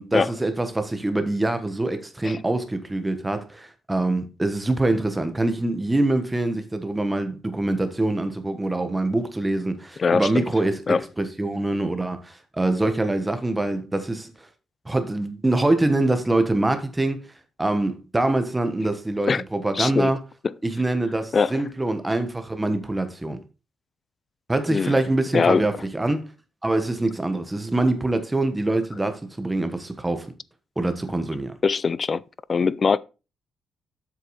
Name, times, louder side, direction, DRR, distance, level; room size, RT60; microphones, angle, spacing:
voice 1, 0.0-14.3 14.8-17.3 17.6-20.2 20.6-23.4 24.5-26.2 26.6-30.3 30.8-31.5, right 2 dB, 10° right, 1.3 m, -24 dB
voice 2, 10.0-10.5 10.9-11.0 19.3-19.4 19.7-20.1 21.3-21.5 24.7-25.0 25.3-25.6 31.6-32.2 32.5-33.0, left 5 dB, 35° left, 0.4 m, -21 dB
7.9 x 6.5 x 4.1 m
cardioid pair, 130°, 0 cm